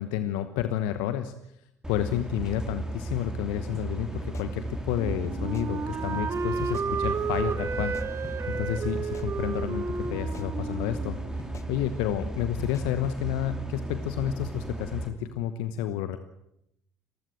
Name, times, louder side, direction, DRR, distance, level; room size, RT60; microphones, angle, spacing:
voice 1, 0.0-1.3 1.9-16.2, left 11 dB, 70° left, 11 dB, 1.1 m, -31 dB
sound 1, 1.8-15.1, right 2 dB, 10° right, 3.6 m, -35 dB
sound 2, 3.7-3.9 4.2-4.9 5.2-5.7 6.1-6.3 6.6-6.9 7.8-8.7 9.0-9.7 10.0-10.5 10.9-11.1 11.4-11.7 12.6-13.2, left 6 dB, 40° left, 1.7 m, -46 dB
Wind instrument woodwind instrument, 5.0-11.8, right 5 dB, 35° right, 1.6 m, -32 dB
27.5 x 15.5 x 7.8 m, 0.81 s
hypercardioid pair, 60°, 8 cm